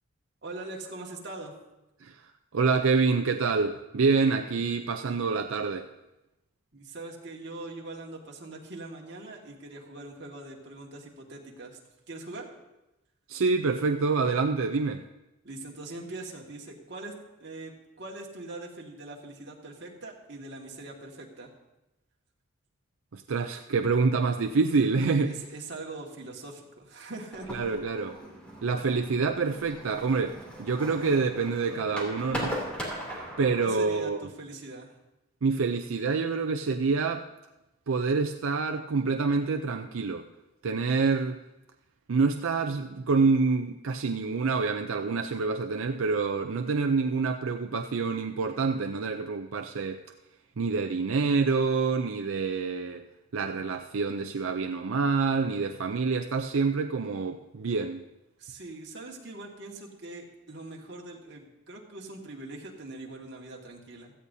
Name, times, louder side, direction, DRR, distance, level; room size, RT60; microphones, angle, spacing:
voice 1, 0.4-1.5 6.7-11.8 12.1-12.5 15.4-17.1 17.4-21.5 25.3-27.5 33.6-34.9 58.4-64.1, right 2 dB, 55° right, -1 dB, 1.9 m, -42 dB
voice 2, 2.5-5.9 13.3-15.1 23.1-25.4 27.5-28.2 28.6-32.6 33.4-34.2 35.4-37.3 37.9-40.3 40.6-41.4 42.1-50.0 50.6-53.0 53.3-58.0, right 4 dB, 85° right, 5 dB, 0.5 m, -27 dB
sound 1, 27.3-33.6, equal, 5° left, 2.8 m, -39 dB
16.5 x 14.0 x 2.7 m, 0.97 s
head